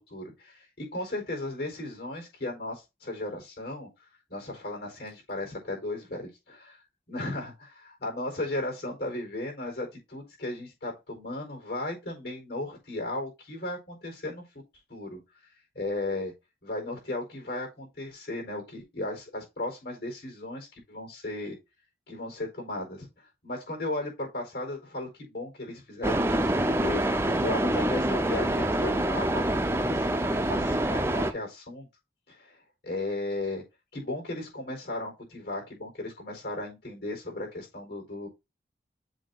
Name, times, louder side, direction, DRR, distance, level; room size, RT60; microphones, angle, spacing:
voice 1, 0.1-3.9 4.3-6.8 7.1-14.4 14.9-15.2 15.7-16.3 16.6-21.6 22.1-23.1 23.4-26.5 26.8-29.5 29.9-31.9 32.3-32.5 32.8-33.6 33.9-38.3, left 2 dB, 70° left, 4.3 m, -35 dB
sound 1, 26.0-31.3, right 1 dB, 15° right, 0.5 m, -26 dB
7.4 x 2.8 x 5.2 m
head